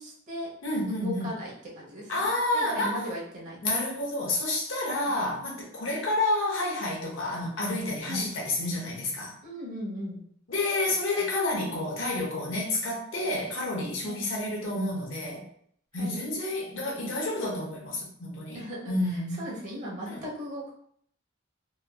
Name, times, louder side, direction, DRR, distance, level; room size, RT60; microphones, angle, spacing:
voice 1, 0.0-0.5 0.9-2.1 2.5-3.7 5.0-5.1 8.1-8.3 9.4-10.2 14.0-14.2 15.9-16.2 18.5-20.7, equal, 40° right, -4 dB, 0.9 m, -37 dB
voice 2, 0.6-1.3 2.1-3.1 3.6-9.4 10.5-15.4 15.9-19.5 20.1-20.2, left 2 dB, 80° left, -2 dB, 0.9 m, -29 dB
3.0 x 2.6 x 2.3 m, 0.65 s
head